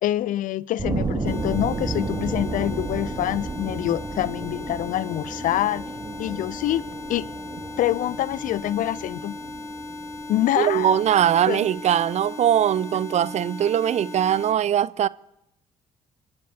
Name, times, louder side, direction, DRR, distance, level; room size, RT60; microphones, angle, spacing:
voice 1, 0.0-5.9 6.2-6.8 7.1-7.3 7.8-9.4 10.3-11.0 11.5-11.7, left 13 dB, 55° left, 0.4 m, -25 dB
sound 1, 0.8-11.6, right 3 dB, 25° right, 2.2 m, -33 dB
sound 2, 1.2-14.5, left 2 dB, 15° left, 3.1 m, -37 dB
voice 2, 10.6-15.1, right 10 dB, 45° right, 0.4 m, -21 dB
29.0 x 10.5 x 2.8 m
hypercardioid pair, 50°, 16 cm